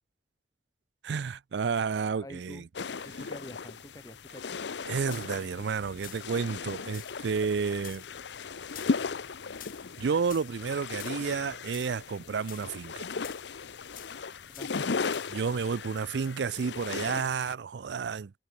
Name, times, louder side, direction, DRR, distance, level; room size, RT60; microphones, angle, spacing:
voice 1, 1.0-2.7 4.9-8.0 10.0-13.0 15.3-18.3, right 5 dB, 75° right, 0.4 m, -31 dB
voice 2, 2.1-2.7 3.0-4.6 14.5-15.1, left 1 dB, 20° left, 1.1 m, -47 dB
sound 1, 2.8-17.6, left 4 dB, 80° left, 0.7 m, -37 dB
sound 2, 4.9-15.5, left 11 dB, 50° left, 1.1 m, -52 dB
open air
head